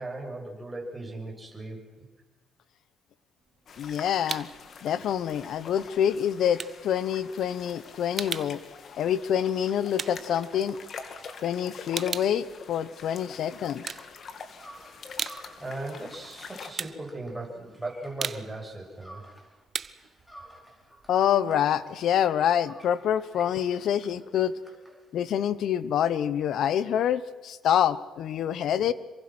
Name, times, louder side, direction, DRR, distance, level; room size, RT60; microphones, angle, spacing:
voice 1, 0.0-1.9 15.0-15.1 15.6-19.2, right 2 dB, 15° right, -1 dB, 7.5 m, -38 dB
sound 1, 3.4-4.7 5.0-11.2 11.5-13.3 13.7-14.6 14.9-21.6, right 6 dB, 45° right, 0.9 m, -38 dB
sound 2, 3.7-16.7, left 5 dB, 55° left, 2.5 m, -45 dB
voice 2, 3.8-4.5 4.8-8.6 9.0-10.8 11.4-13.8 21.1-24.5 25.1-28.9, left 9 dB, 75° left, 16 dB, 1.1 m, -26 dB
sound 3, 14.6-19.6 19.9-25.5, right 1 dB, 5° left, 5.0 m, -53 dB
27.0 x 24.0 x 6.2 m, 1.2 s
cardioid pair, 90°, 0 cm